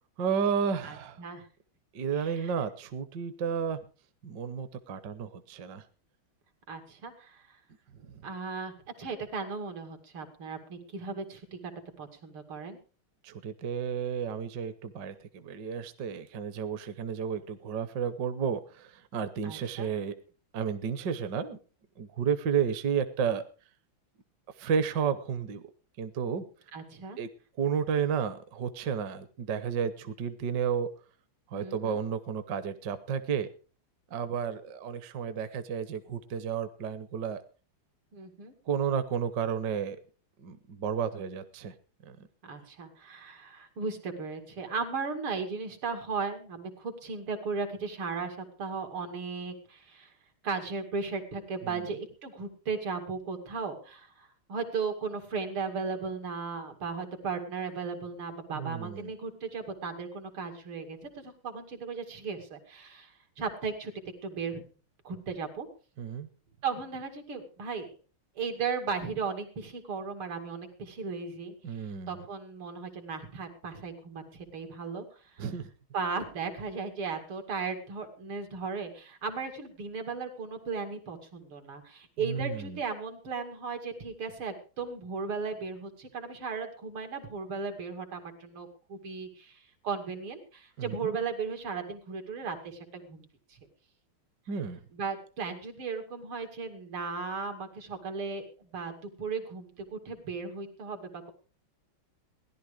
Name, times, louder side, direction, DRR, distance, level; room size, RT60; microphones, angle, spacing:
voice 1, 0.2-1.2 1.9-3.8 4.2-5.8 13.2-20.1 20.5-21.6 22.0-23.4 24.6-25.6 26.0-26.4 27.2-27.3 27.6-30.9 31.5-33.5 34.1-37.4 38.7-40.0 40.4-41.7 42.1-42.2 58.5-59.1 66.0-66.3 71.6-72.2 75.4-75.6 82.2-82.8 90.8-91.0 94.5-94.8, right 7 dB, 60° right, 12 dB, 1.5 m, -32 dB
voice 2, 0.8-1.5 2.1-2.5 6.7-7.6 8.2-8.7 9.0-11.6 12.0-12.8 19.4-19.9 26.7-27.2 31.5-32.0 38.1-38.5 42.4-50.1 50.4-63.9 64.2-64.6 65.0-65.7 66.6-67.9 68.3-75.5 75.9-93.6 94.9-101.3, right 5 dB, 85° right, 5 dB, 3.2 m, -36 dB
17.0 x 11.0 x 4.8 m, 0.37 s
omnidirectional pair, 2.3 m